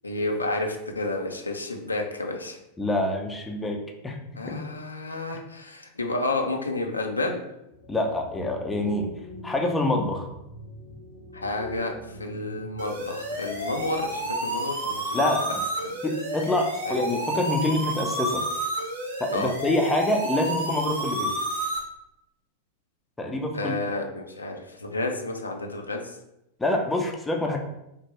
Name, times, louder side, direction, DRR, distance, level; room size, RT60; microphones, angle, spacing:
voice 1, 0.0-2.6 4.4-7.4 11.3-11.9 12.2-15.3 16.9-17.1 19.3-19.5 23.5-26.0, left 2 dB, 80° left, 3 dB, 0.4 m, -30 dB
voice 2, 2.8-4.2 4.5-4.6 7.9-9.1 9.4-10.3 15.1-15.6 16.0-18.4 19.2-21.3 23.2-23.8 26.6-27.6, left 1 dB, 10° left, 2 dB, 0.4 m, -26 dB
sound 1, 7.7-14.2, left 1 dB, 20° right, 0.7 m, -43 dB
sound 2, 12.8-21.8, right 1 dB, 65° right, 0.7 m, -30 dB
3.3 x 2.1 x 3.2 m, 0.86 s
figure-of-eight pair, 90°, 0 cm